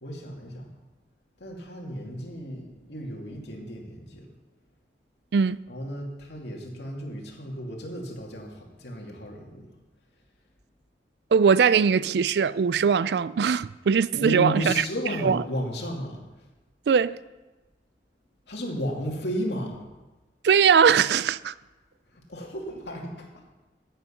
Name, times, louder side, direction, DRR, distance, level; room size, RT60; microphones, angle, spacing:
voice 1, 0.0-0.7 1.4-4.3 5.7-9.7 14.1-16.2 18.5-19.8 22.1-23.3, equal, 70° left, 2.6 m, -33 dB
voice 2, 11.3-14.8 15.2-15.4 16.9-17.2 20.4-21.5, right 6 dB, 65° right, 0.4 m, -21 dB
15.5 x 8.2 x 5.7 m
head